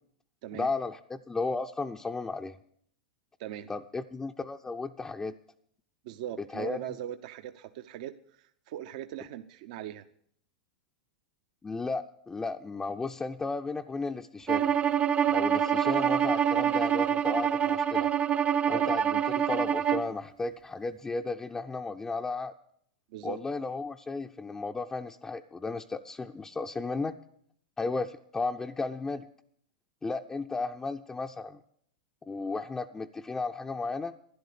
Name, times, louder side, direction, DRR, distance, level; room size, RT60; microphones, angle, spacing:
voice 1, 0.5-2.6 3.7-5.4 6.5-6.8 11.6-14.7 15.3-18.1 18.7-22.5 23.2-27.1 27.8-29.3 30.0-31.6 32.3-34.1, left 3 dB, 15° left, 5 dB, 0.5 m, -34 dB
voice 2, 6.0-10.0 18.7-18.9 23.1-23.4, right 11 dB, 60° right, 9 dB, 0.7 m, -40 dB
Bowed string instrument, 14.5-20.1, right 8 dB, 30° right, 0.6 m, -26 dB
12.0 x 10.5 x 6.8 m, 0.67 s
hypercardioid pair, 110°, 4 cm